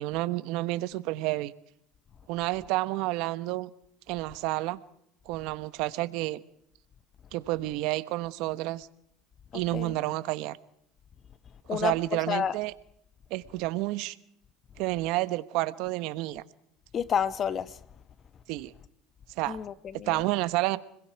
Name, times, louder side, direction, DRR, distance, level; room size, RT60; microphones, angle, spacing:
voice 1, 0.0-1.5 2.3-3.7 4.1-4.8 5.3-6.4 7.3-8.9 9.5-10.6 11.7-12.7 13.3-14.1 14.8-16.4 18.5-18.7 19.4-19.6 20.1-20.8, right 18 dB, 70° right, 1.1 m, -30 dB
voice 2, 9.5-9.9 11.7-12.0 12.3-12.6 16.9-17.8 19.5-20.2, left 8 dB, 40° left, 1.1 m, -30 dB
29.5 x 21.5 x 4.7 m
supercardioid pair, 95°, 0 cm